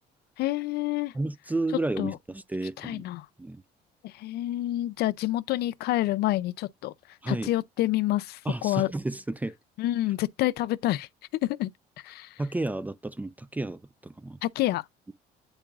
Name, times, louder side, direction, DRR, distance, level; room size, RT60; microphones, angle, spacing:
voice 1, 0.4-1.1 2.0-2.2 2.8-3.3 4.0-6.9 7.3-8.9 9.8-11.1 11.4-11.7 12.0-12.4 14.4-14.8, left 15 dB, 70° left, 0.4 m, -28 dB
voice 2, 1.1-3.0 3.4-3.6 7.2-7.5 8.5-9.6 12.4-14.4, right 2 dB, 10° right, 0.3 m, -32 dB
8.8 x 4.7 x 2.3 m
cardioid pair, 110°, 17 cm